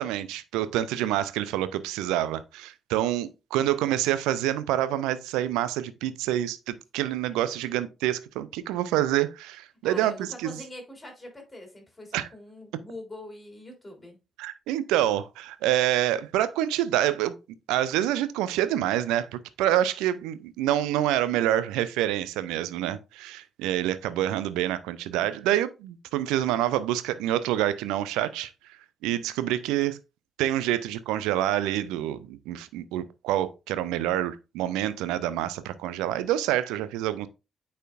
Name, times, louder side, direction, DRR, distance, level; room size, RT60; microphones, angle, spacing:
voice 1, 0.0-10.6 12.1-12.3 14.4-17.4 17.7-28.5 29.0-30.0 30.4-37.3, right 12 dB, 70° right, 0.5 m, -27 dB
voice 2, 9.8-14.2, left 1 dB, 20° left, 3.4 m, -43 dB
8.9 x 4.3 x 2.4 m
figure-of-eight pair, 40°, 0 cm